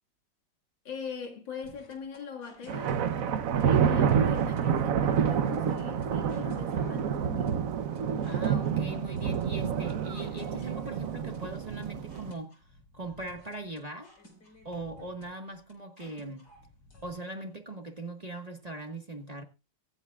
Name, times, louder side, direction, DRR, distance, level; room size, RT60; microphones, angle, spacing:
voice 1, 0.8-3.0 3.6-7.7, left 6 dB, 85° left, 2.7 m, -42 dB
sound 1, 1.6-17.1, left 2 dB, 70° left, 5.1 m, -55 dB
sound 2, 2.7-12.3, right 7 dB, 55° right, 1.1 m, -28 dB
voice 2, 8.2-12.5 12.9-14.1 14.6-16.4 17.0-19.4, right 2 dB, 25° right, 1.4 m, -40 dB
25.0 x 9.0 x 2.4 m
omnidirectional pair, 2.0 m